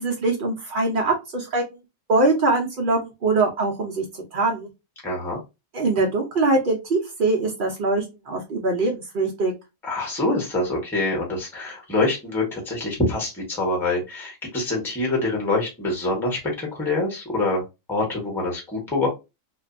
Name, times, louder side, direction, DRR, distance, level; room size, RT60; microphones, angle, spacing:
voice 1, 0.0-1.6 2.1-4.0 4.3-4.7 5.7-9.5, right 3 dB, 85° right, 0 dB, 0.4 m, -22 dB
voice 2, 5.0-5.4 9.8-17.6 17.9-19.1, left 2 dB, ahead, -1 dB, 0.7 m, -25 dB
2.6 x 2.3 x 2.5 m, 0.24 s
omnidirectional pair, 1.7 m